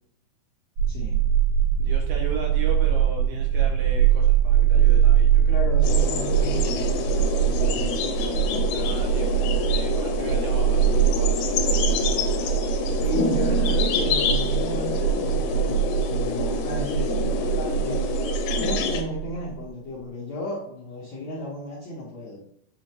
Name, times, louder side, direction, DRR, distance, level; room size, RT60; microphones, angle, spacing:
sound 1, 0.8-19.6, right 9 dB, 65° right, 2.1 m, -23 dB
voice 1, 0.9-1.2 4.9-5.0 5.3-8.1 13.0-18.0 18.6-22.4, left 1 dB, 70° left, -7 dB, 1.7 m, -34 dB
voice 2, 1.8-5.6 8.7-9.4 9.6-13.2, right 4 dB, 80° right, 0 dB, 2.1 m, -37 dB
sound 2, 5.8-19.0, left 5 dB, 85° left, 2.6 m, -27 dB
6.3 x 2.5 x 2.9 m, 0.73 s
omnidirectional pair, 4.4 m